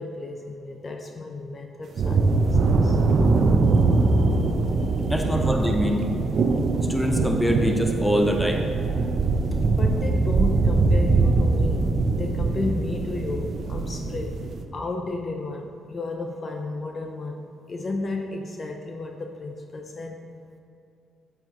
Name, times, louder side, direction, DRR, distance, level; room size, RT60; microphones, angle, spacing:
voice 1, 0.0-3.0 4.1-4.5 4.8-5.1 9.6-14.4 14.7-17.4 17.7-20.2, left 2 dB, 40° left, 3 dB, 0.6 m, -33 dB
sound 1, 2.0-14.6, right 3 dB, 55° right, 0.7 m, -22 dB
voice 2, 5.1-6.1 6.8-8.6, equal, 5° left, 3 dB, 0.9 m, -24 dB
8.6 x 7.8 x 3.1 m, 2.5 s
cardioid pair, 90°, 0 cm